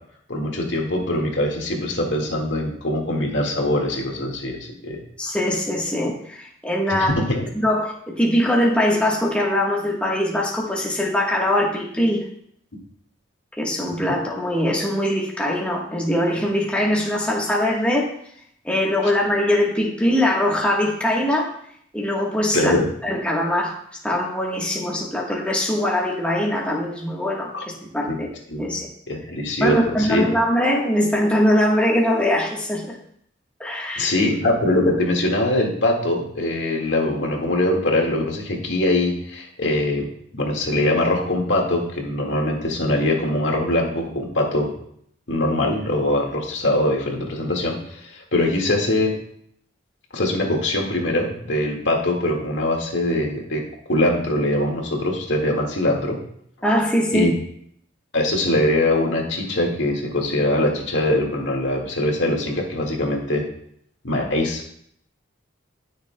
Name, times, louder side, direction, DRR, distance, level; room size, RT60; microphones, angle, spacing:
voice 1, 0.3-5.0 6.9-7.5 22.5-22.9 27.5-27.6 28.1-28.2 28.5-28.7 29.1-30.3 34.0-40.1 40.3-44.7 45.3-49.1 50.1-53.6 53.9-56.2 57.1-57.3 58.1-63.4 64.0-64.7, left 1 dB, 70° left, 0 dB, 2.0 m, -22 dB
voice 2, 5.2-7.1 7.5-12.2 13.6-18.1 18.6-21.5 21.9-22.7 23.0-23.8 24.0-28.3 28.6-28.9 29.6-33.0 33.6-34.1 56.6-57.3, left 1 dB, 5° left, -3 dB, 1.3 m, -22 dB
19.5 x 6.5 x 2.3 m, 0.68 s
head